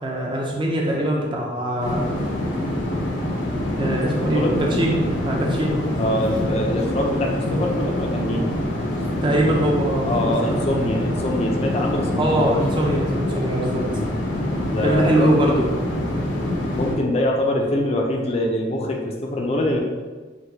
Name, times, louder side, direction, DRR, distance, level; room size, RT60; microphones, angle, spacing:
voice 1, 0.0-2.1 3.8-5.0 5.2-5.8 9.2-10.1 10.4-10.8 12.2-13.8 14.8-15.7, right 1 dB, 25° right, -2 dB, 0.5 m, -22 dB
sound 1, 1.8-17.0, left 1 dB, 80° left, 0.8 m, -25 dB
voice 2, 4.2-4.6 6.0-8.5 10.1-12.5 13.9-14.2 14.7-15.1 16.7-19.8, left 1 dB, 35° left, 0 dB, 0.4 m, -24 dB
6.0 x 2.2 x 2.7 m, 1.3 s
head